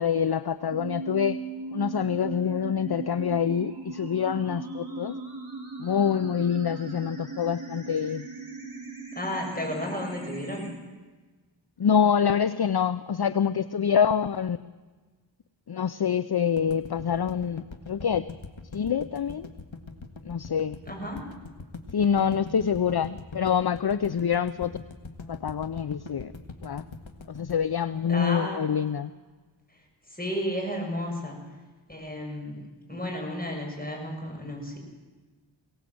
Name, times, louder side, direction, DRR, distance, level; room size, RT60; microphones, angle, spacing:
voice 1, 0.0-1.4 1.7-5.1 5.8-8.3 11.8-14.6 15.7-18.3 18.7-19.5 20.2-20.8 21.9-24.8 25.3-26.3 26.6-26.8 27.3-29.1, left 7 dB, 55° left, 15 dB, 0.6 m, -26 dB
sound 1, 0.7-10.7, right 4 dB, 50° right, 6.1 m, -38 dB
voice 2, 9.2-10.7 20.8-21.2 28.1-28.7 29.7-31.4 31.9-32.6 32.9-34.8, equal, 20° left, 0 dB, 7.4 m, -33 dB
sound 2, 16.6-28.7, left 4 dB, 75° left, 1.7 m, -42 dB
23.0 x 17.5 x 7.8 m, 1.3 s
wide cardioid pair, 40°, 47 cm